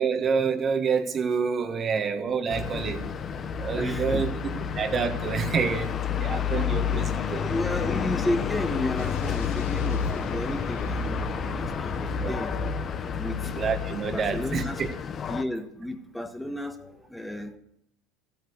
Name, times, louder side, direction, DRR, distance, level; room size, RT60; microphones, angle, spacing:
voice 1, 0.0-3.0 3.6-7.5 12.2-12.3 13.4-14.9, right 6 dB, 35° right, 7 dB, 1.6 m, -28 dB
sound 1, 2.5-15.4, left 7 dB, 35° left, 0.9 m, -30 dB
voice 2, 3.8-4.3 6.1-6.2 7.5-12.6 12.9-13.5 14.1-14.8 15.3-17.6, left 1 dB, 5° left, 6 dB, 1.5 m, -33 dB
Explosion, 9.0-13.7, left 4 dB, 90° left, 3.7 m, -38 dB
13.5 x 9.0 x 8.3 m, 0.77 s
supercardioid pair, 95°, 0 cm